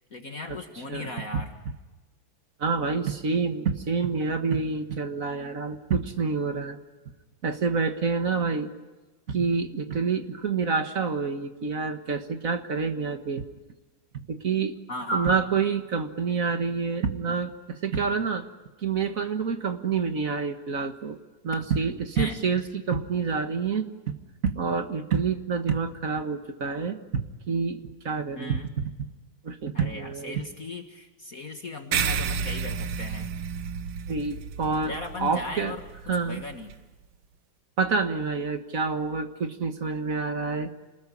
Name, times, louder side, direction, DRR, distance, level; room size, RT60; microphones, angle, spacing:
voice 1, 0.1-1.5 14.9-15.4 22.2-22.4 28.4-28.7 29.7-33.3 34.9-36.8, left 2 dB, 40° left, 5 dB, 2.0 m, -37 dB
voice 2, 0.9-1.4 2.6-6.8 7.4-8.7 9.3-13.4 14.3-14.7 15.1-18.5 18.8-21.2 21.4-24.2 24.4-28.6 29.4-30.4 34.1-34.9 35.2-35.7 36.1-36.4 37.8-40.7, right 5 dB, 40° right, 8 dB, 1.8 m, -27 dB
sound 1, 31.9-36.8, right 6 dB, 80° right, 2.0 m, -32 dB
28.5 x 20.5 x 10.0 m, 1.2 s
omnidirectional pair, 2.4 m